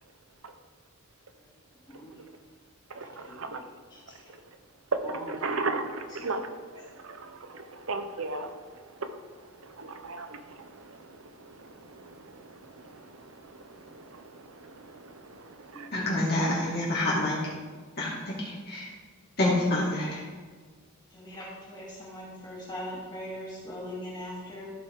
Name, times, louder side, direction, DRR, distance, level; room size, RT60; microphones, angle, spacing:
voice 1, 2.9-3.6 5.1-6.4 7.1-7.3 7.5-8.5 9.8-10.3 13.9-14.0 15.7-15.9, right 3 dB, 70° right, 0.7 m, -34 dB
voice 2, 5.0-5.3 15.7-16.0 21.1-24.7, equal, 20° left, 2.4 m, -40 dB
voice 3, 15.9-17.4 18.0-18.9 19.4-20.2, left 1 dB, 45° left, 2.1 m, -27 dB
14.5 x 5.4 x 3.7 m
head